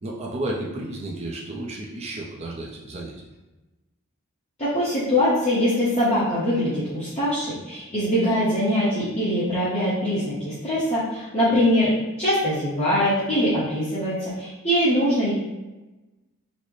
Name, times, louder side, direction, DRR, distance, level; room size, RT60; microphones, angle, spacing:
voice 1, 0.0-3.1, right 1 dB, 30° right, -2 dB, 0.4 m, -32 dB
voice 2, 4.6-11.9 12.2-15.3, equal, 30° left, -13 dB, 0.9 m, -22 dB
4.0 x 2.1 x 3.1 m, 1.1 s
head